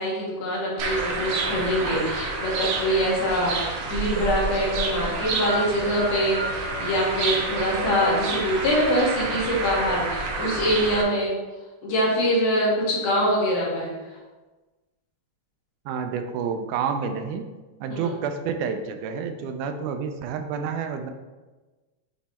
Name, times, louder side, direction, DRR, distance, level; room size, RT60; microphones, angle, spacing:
voice 1, 0.0-11.3 11.8-13.9 17.9-18.1, equal, 80° left, -5 dB, 3.2 m, -24 dB
sound 1, 0.8-11.0, right 3 dB, 65° right, 1.6 m, -29 dB
voice 2, 15.9-17.5 17.8-21.1, right 6 dB, 80° right, 6 dB, 2.0 m, -29 dB
8.0 x 3.1 x 4.2 m, 1.2 s
omnidirectional pair, 3.6 m